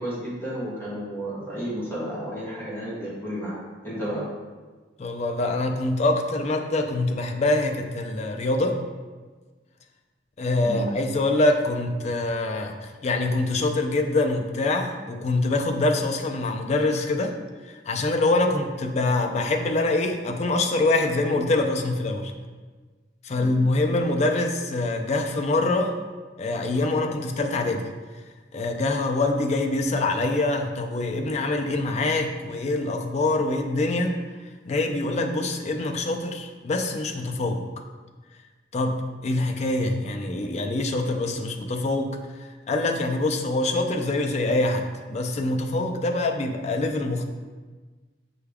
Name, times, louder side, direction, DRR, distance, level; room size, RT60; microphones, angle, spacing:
voice 1, 0.0-3.5 3.8-4.2 10.6-10.9 23.3-23.6, equal, 15° left, -9 dB, 1.3 m, -32 dB
voice 2, 5.0-8.8 10.4-17.3 17.7-22.3 23.2-26.0 26.4-27.9 28.5-34.2 34.7-37.6 38.7-42.1 42.4-47.3, left 2 dB, 40° left, 3 dB, 0.4 m, -25 dB
5.6 x 2.3 x 3.4 m, 1.4 s
head